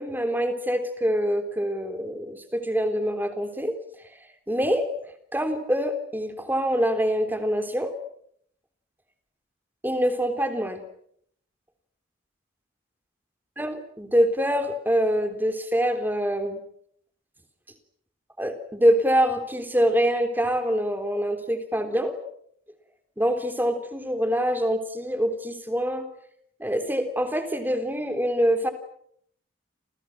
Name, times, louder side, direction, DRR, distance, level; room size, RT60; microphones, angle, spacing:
voice 1, 0.0-3.8 4.0-4.2 4.5-4.9 5.3-7.9 9.8-10.8 13.6-16.6 18.4-22.2 23.2-26.1 26.6-28.7, equal, 10° right, 7 dB, 3.5 m, -25 dB
29.5 x 29.0 x 6.1 m, 0.67 s
head